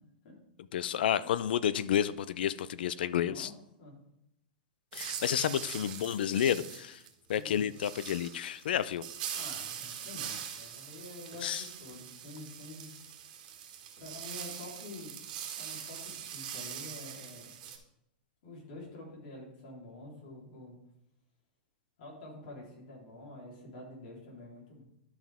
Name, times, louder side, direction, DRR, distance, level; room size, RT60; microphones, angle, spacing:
voice 1, 0.7-3.5 4.9-7.0 7.3-9.1 11.4-11.6, left 10 dB, 80° left, 17 dB, 0.5 m, -30 dB
voice 2, 3.1-3.5 3.8-4.0 7.3-7.7 9.3-12.9 14.0-15.1 15.6-17.6 18.4-20.8 22.0-24.8, left 2 dB, 55° left, -4 dB, 3.7 m, -48 dB
sound 1, 4.9-17.8, right 9 dB, 55° right, 1.5 m, -43 dB
12.0 x 5.6 x 3.6 m, 0.81 s
supercardioid pair, 150°, 5 cm